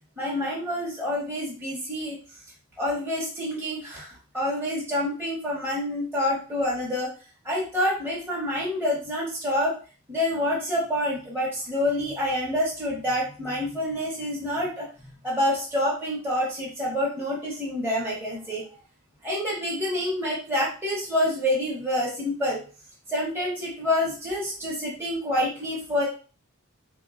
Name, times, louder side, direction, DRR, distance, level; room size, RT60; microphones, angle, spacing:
voice 1, 0.2-2.2 2.8-7.1 7.4-9.7 10.1-18.6 19.2-22.6 23.1-26.1, left 1 dB, 10° right, -6 dB, 0.7 m, -27 dB
3.6 x 2.8 x 2.4 m, 0.37 s
head